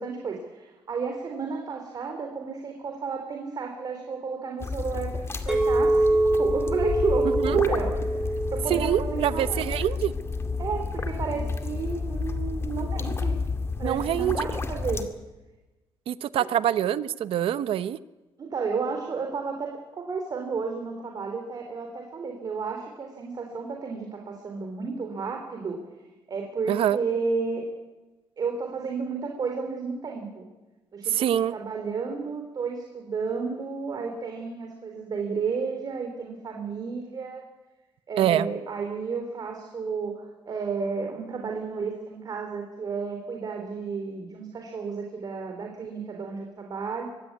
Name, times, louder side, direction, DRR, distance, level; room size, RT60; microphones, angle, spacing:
voice 1, 0.0-9.6 10.6-13.4 13.8-15.0 18.4-25.8 26.3-27.7 28.4-30.5 30.9-37.4 38.1-47.0, right 5 dB, 45° right, 3 dB, 3.4 m, -32 dB
sound 1, 4.6-15.0, left 4 dB, 25° left, 2.1 m, -31 dB
Chink clink, 5.5-9.8 10.3-10.7, right 2 dB, 5° right, 3.2 m, -26 dB
voice 2, 8.7-10.1 13.8-14.5 16.1-18.0 26.7-27.0 31.1-31.5 38.2-38.5, right 11 dB, 80° right, 15 dB, 0.9 m, -25 dB
24.0 x 16.0 x 9.4 m, 1.1 s
cardioid pair, 135°, 9 cm